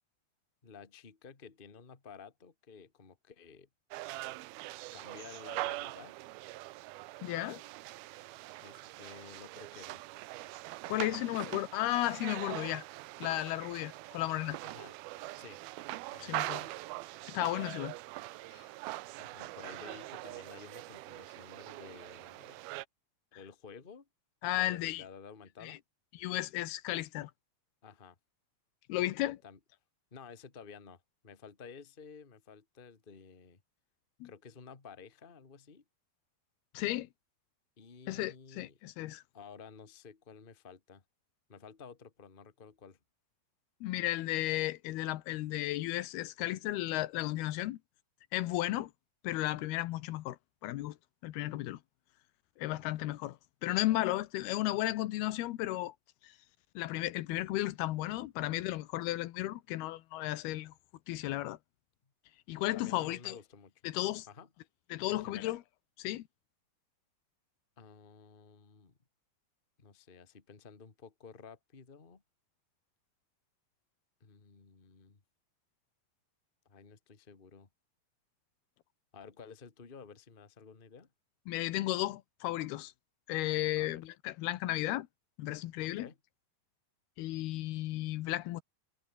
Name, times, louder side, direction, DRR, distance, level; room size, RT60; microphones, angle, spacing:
voice 1, 0.6-3.7 4.9-6.1 8.6-10.0 11.1-11.6 14.6-14.9 15.4-15.6 16.1-16.8 19.2-22.6 23.3-24.1 24.5-25.8 27.8-28.2 29.4-29.6 30.1-33.6 34.2-35.8 37.8-38.8 39.3-41.0 41.5-43.0 52.7-53.2 62.7-63.7 64.3-64.5 65.1-65.6 67.8-68.9 69.8-72.2 74.2-75.2 76.6-77.7 79.1-81.1 83.8-84.0 85.8-86.2, left 5 dB, 25° left, 1.1 m, -52 dB
sound 1, 3.9-22.8, right 19 dB, 80° right, 2.5 m, -43 dB
voice 2, 7.2-7.6 10.9-12.9 13.2-14.6 16.2-16.7 17.3-17.9 18.5-18.6 24.4-25.0 25.6-25.8 26.2-27.3 28.9-29.4 34.2-34.3 36.7-37.1 38.1-39.2 43.8-47.8 48.3-48.9 49.2-51.0 51.2-51.8 52.6-53.4 53.6-55.9 56.2-56.3 56.8-60.7 61.1-61.6 62.5-63.4 63.8-64.3 64.9-65.6 66.0-66.3 81.5-82.9 83.3-85.1 85.4-86.1 87.2-88.6, left 16 dB, 90° left, 2.9 m, -34 dB
omnidirectional pair, 4.5 m